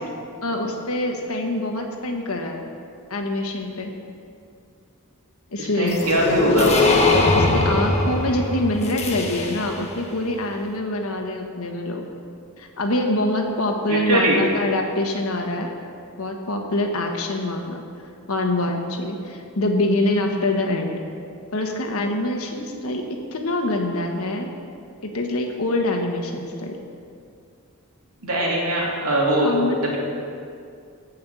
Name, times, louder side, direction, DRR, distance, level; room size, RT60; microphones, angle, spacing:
voice 1, 0.4-2.6 3.1-3.9 5.5-6.7 7.3-12.1 12.6-15.7 16.2-17.8 18.3-21.0 21.5-24.5 25.1-26.8 29.4-29.9, left 1 dB, 75° left, 3 dB, 1.4 m, -25 dB
voice 2, 5.6-6.7 13.9-14.5 28.2-29.5 29.8-30.0, right 1 dB, 85° right, -4 dB, 2.7 m, -21 dB
sound 1, 5.9-9.9, left 2 dB, 30° left, 1.1 m, -21 dB
14.5 x 5.7 x 6.9 m, 2.4 s
head